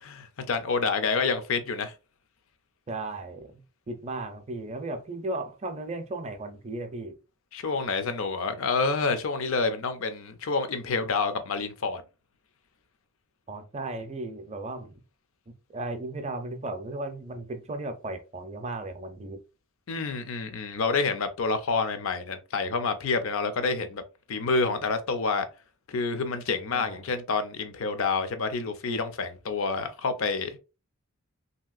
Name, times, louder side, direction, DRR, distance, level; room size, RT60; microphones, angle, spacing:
voice 1, 0.0-1.9 7.5-12.0 19.9-24.0 24.3-25.5 25.9-30.6, left 4 dB, 60° left, 0.5 m, -28 dB
voice 2, 2.9-7.2 13.5-15.0 15.5-19.4 26.7-27.1, right 2 dB, 30° right, 0.5 m, -36 dB
3.1 x 2.8 x 2.4 m
head